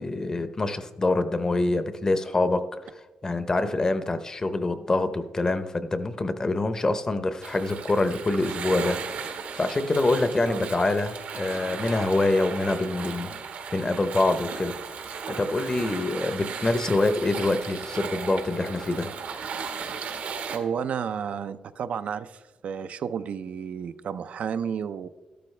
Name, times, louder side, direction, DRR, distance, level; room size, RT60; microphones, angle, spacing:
voice 1, 0.0-2.6 3.2-13.3 13.7-14.7 15.3-19.1, left 2 dB, 25° left, 10 dB, 0.8 m, -25 dB
sound 1, 7.4-20.6, right 6 dB, 85° right, 1.5 m, -36 dB
voice 2, 20.5-25.1, right 7 dB, 65° right, 11 dB, 0.5 m, -32 dB
13.0 x 12.0 x 3.3 m, 1.2 s
wide cardioid pair, 135°, 3 cm